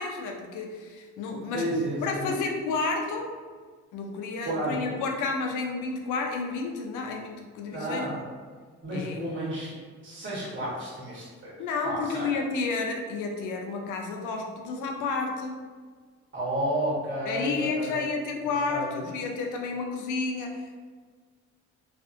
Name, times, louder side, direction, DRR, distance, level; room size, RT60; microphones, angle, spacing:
voice 1, 0.0-1.7 2.0-3.3 3.9-8.1 8.9-9.2 11.6-15.6 17.3-20.8, left 4 dB, 85° left, 2 dB, 0.5 m, -31 dB
voice 2, 1.5-2.3 4.4-5.0 7.7-8.2 8.8-9.7 10.0-11.5 11.8-12.3 16.3-18.0 18.4-19.2, equal, 40° right, -7 dB, 1.1 m, -31 dB
2.5 x 2.4 x 2.5 m, 1.5 s
cardioid pair, 90°, 30 cm